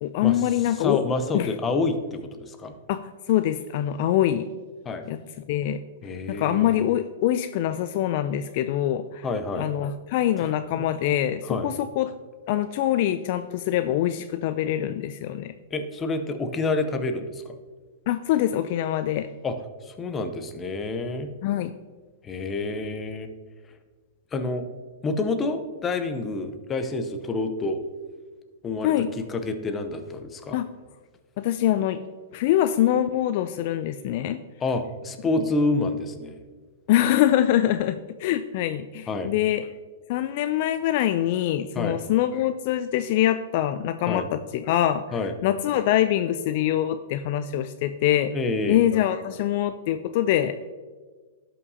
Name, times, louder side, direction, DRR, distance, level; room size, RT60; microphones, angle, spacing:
voice 1, 0.0-1.0 1.3-1.5 2.9-3.0 3.3-4.5 5.1-5.2 5.5-5.8 6.3-9.3 9.6-12.1 12.5-15.5 18.1-19.3 21.4-21.7 28.8-29.1 30.5-30.6 31.4-32.0 32.3-34.4 35.4-35.5 36.9-39.7 40.1-48.3 48.7-50.6, left 12 dB, 50° left, 11 dB, 0.3 m, -24 dB
voice 2, 0.8-2.7 4.9-5.0 6.0-6.7 9.2-9.7 10.4-10.5 11.4-11.7 15.7-17.5 19.4-19.6 19.8-21.3 22.2-23.3 24.3-24.7 25.0-27.8 28.6-30.6 34.6-36.4 39.1-39.3 41.7-42.0 44.1-44.3 45.1-45.3 48.3-48.8, left 3 dB, 20° left, 8 dB, 0.7 m, -28 dB
12.0 x 5.6 x 2.7 m, 1.4 s
hypercardioid pair, 140°, 0 cm